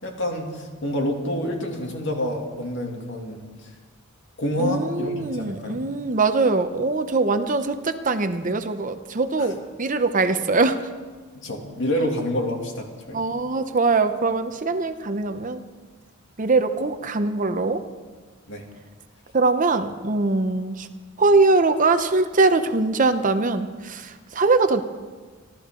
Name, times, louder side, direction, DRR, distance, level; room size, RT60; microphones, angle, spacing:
voice 1, 0.0-3.7 4.4-5.8 11.3-13.2 18.5-18.6, equal, 60° left, 1 dB, 2.6 m, -28 dB
voice 2, 4.6-10.9 13.1-15.6 16.4-17.8 19.3-20.9 21.2-24.8, right 3 dB, 40° right, 9 dB, 0.8 m, -22 dB
27.5 x 13.0 x 3.8 m, 1.4 s
head